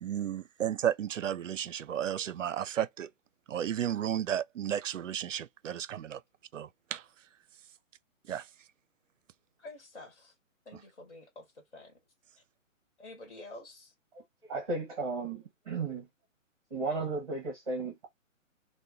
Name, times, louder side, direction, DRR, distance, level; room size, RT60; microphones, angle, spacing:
voice 1, 0.0-3.1 3.5-6.2 6.5-7.0 8.3-8.5, right 10 dB, 70° right, 0.5 m, -33 dB
voice 2, 9.6-10.3 10.6-12.0 13.0-13.9, left 2 dB, 45° left, 1.3 m, -49 dB
voice 3, 14.4-16.1 16.7-18.1, right 3 dB, 30° right, 0.9 m, -34 dB
2.8 x 2.2 x 3.4 m
hypercardioid pair, 175°, 40 cm